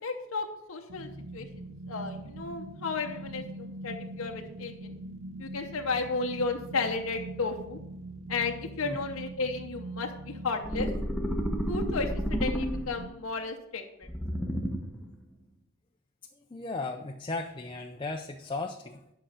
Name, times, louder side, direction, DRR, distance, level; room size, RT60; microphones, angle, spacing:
voice 1, 0.0-1.5 1.9-4.9 5.4-7.8 8.3-10.9 11.7-14.1, left 4 dB, 80° left, 3 dB, 0.9 m, -33 dB
sound 1, 0.9-13.1, right 2 dB, 75° right, 0.8 m, -43 dB
sound 2, 10.6-13.1 14.0-15.0, equal, ahead, 0.9 m, -31 dB
voice 2, 16.5-19.0, left 3 dB, 25° left, 3 dB, 0.5 m, -36 dB
10.0 x 5.8 x 5.0 m, 0.85 s
head